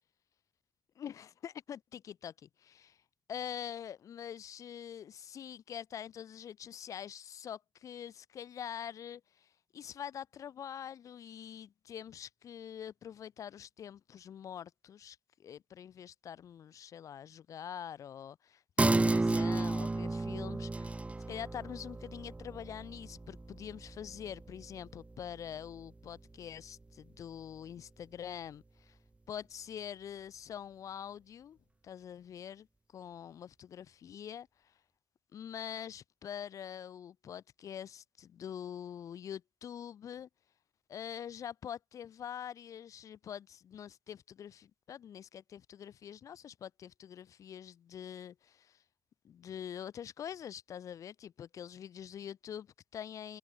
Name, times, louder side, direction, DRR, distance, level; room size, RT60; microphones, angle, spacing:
voice 1, 1.0-3.0 3.3-21.0 21.3-29.0 29.3-31.6 31.8-32.7 32.9-34.7 35.3-40.3 40.9-48.8 49.2-53.4, left 9 dB, 80° left, 4.3 m, -45 dB
sound 1, 18.8-25.8 26.2-26.3, right 2 dB, 25° right, 3.5 m, -33 dB
cardioid pair, 85°, 5 cm